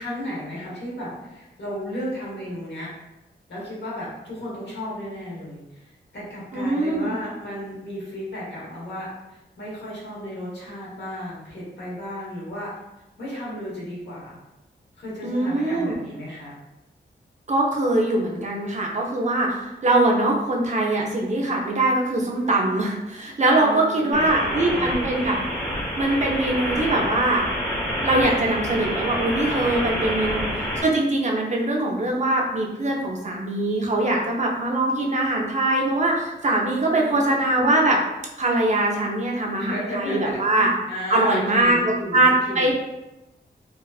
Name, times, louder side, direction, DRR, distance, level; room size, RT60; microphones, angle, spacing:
voice 1, 0.0-2.9 3.5-12.7 13.2-14.4 15.0-16.5 23.5-25.1 29.9-30.2 36.9-37.3 39.5-40.4 40.9-42.7, equal, 75° left, -7 dB, 1.1 m, -34 dB
voice 2, 6.5-7.1 15.2-16.0 17.5-25.4 26.0-27.4 28.0-30.5 30.8-38.0 38.4-40.7 41.1-42.7, right 2 dB, 40° right, -1 dB, 0.5 m, -22 dB
sound 1, 24.1-30.8, equal, 10° left, 1.0 m, -28 dB
2.9 x 2.3 x 2.3 m, 0.98 s
wide cardioid pair, 95°, 18 cm